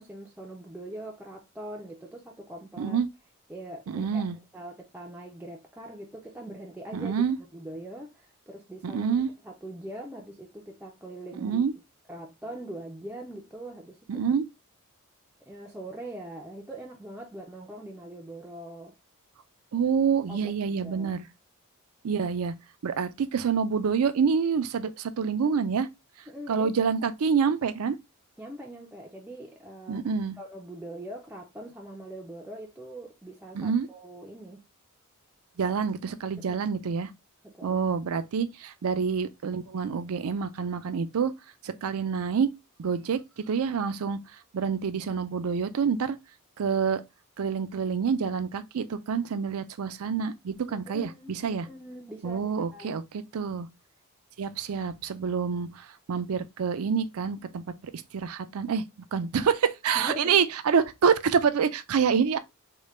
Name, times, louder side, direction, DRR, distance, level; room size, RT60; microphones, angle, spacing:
voice 1, 0.0-3.0 3.5-7.1 7.5-9.2 9.4-11.6 12.1-14.2 15.4-19.0 20.3-20.5 20.8-21.2 26.3-26.7 28.4-30.1 30.4-34.6 36.4-36.6 37.4-37.8 50.7-53.0 60.0-60.4, right 1 dB, 5° right, 0.4 m, -42 dB
voice 2, 3.9-4.4 6.9-7.4 8.8-9.3 11.4-11.7 14.1-14.5 19.7-21.3 22.0-22.5 22.8-25.9 26.5-28.0 29.9-30.4 33.5-33.9 35.6-37.1 37.6-41.3 41.6-42.5 42.8-44.2 44.5-46.2 46.6-47.0 47.4-51.7 52.2-53.7 54.4-58.8 59.1-62.4, right 6 dB, 80° right, 0.4 m, -27 dB
3.8 x 2.2 x 3.1 m
head